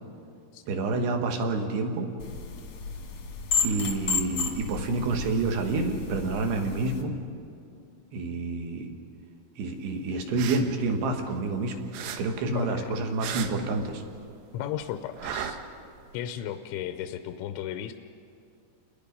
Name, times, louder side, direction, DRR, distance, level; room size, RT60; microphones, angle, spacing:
voice 1, 0.7-2.1 3.6-7.1 8.1-8.9 9.6-14.0, right 3 dB, 65° right, 4 dB, 3.4 m, -28 dB
sound 1, 2.2-7.0, left 5 dB, 55° left, 1.9 m, -32 dB
sound 2, 10.2-11.6 11.9-14.3 14.6-16.2, right 8 dB, 80° right, 3.4 m, -37 dB
voice 2, 12.5-13.0 14.5-15.6 16.1-17.9, left 10 dB, 80° left, 8 dB, 2.9 m, -35 dB
30.0 x 21.0 x 5.3 m, 2.5 s
omnidirectional pair, 5.5 m